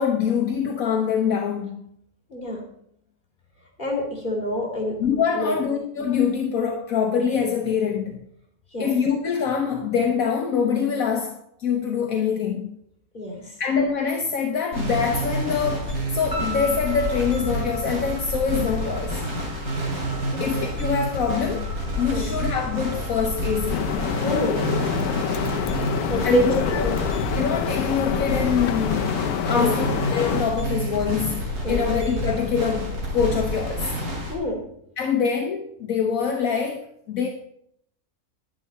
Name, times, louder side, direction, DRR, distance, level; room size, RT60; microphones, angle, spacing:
voice 1, 0.0-1.8 5.0-8.2 8.8-12.7 13.6-19.2 20.4-23.9 26.2-26.4 26.7-26.8 27.3-29.2 29.5-33.9 35.0-37.3, left 6 dB, 65° left, 3 dB, 1.4 m, -24 dB
voice 2, 2.3-2.6 3.8-4.9 5.3-5.6 8.7-9.0 13.1-13.5 20.3-20.4 22.1-22.4 24.2-24.7 26.1-27.0 27.4-27.5 29.5-30.0 31.6-31.9 34.3-34.6, equal, 30° left, -2 dB, 3.4 m, -27 dB
sound 1, 14.7-34.3, equal, 90° right, 3.6 m, -29 dB
sound 2, 16.3-28.6, right 1 dB, 15° right, 3.2 m, -41 dB
sound 3, 23.7-30.4, left 10 dB, 85° left, 1.1 m, -27 dB
10.5 x 10.5 x 4.2 m, 0.71 s
omnidirectional pair, 1.6 m